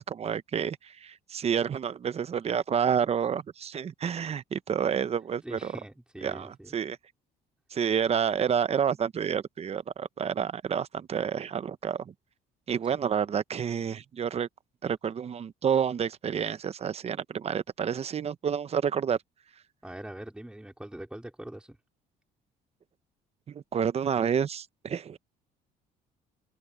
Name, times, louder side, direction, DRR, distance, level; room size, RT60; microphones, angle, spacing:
voice 1, 0.0-5.7 6.2-7.0 7.7-12.1 12.7-14.5 14.8-19.2 23.5-25.2, right 7 dB, 40° right, 0.9 m, -29 dB
voice 2, 5.4-6.7 7.8-8.0 19.8-21.8, right 1 dB, 5° right, 4.4 m, -43 dB
cardioid pair, 110°, 17 cm